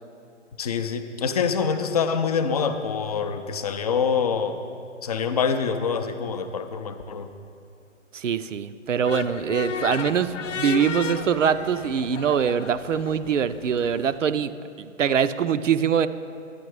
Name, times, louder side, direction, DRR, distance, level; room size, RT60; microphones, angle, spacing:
voice 1, 0.6-4.6 5.0-7.3, left 6 dB, 30° left, 8 dB, 0.5 m, -25 dB
voice 2, 8.1-16.1, right 7 dB, 75° right, 13 dB, 0.6 m, -23 dB
sound 1, 9.0-14.2, left 7 dB, 70° left, 0.6 m, -34 dB
11.0 x 8.9 x 4.7 m, 2.5 s
figure-of-eight pair, 130°, 38 cm